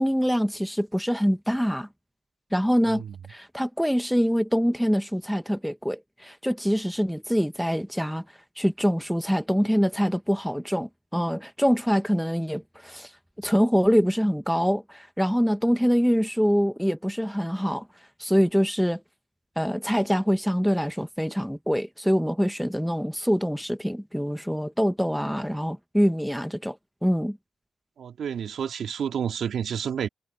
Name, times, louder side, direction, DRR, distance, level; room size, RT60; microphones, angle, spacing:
voice 1, 0.0-1.9 2.5-3.0 3.3-8.2 8.6-13.1 13.4-17.9 18.2-19.0 19.6-27.4, equal, ahead, 1.3 m, -24 dB
voice 2, 2.9-3.2 28.0-30.1, right 8 dB, 60° right, 2.2 m, -30 dB
cardioid pair, 105°, 0 cm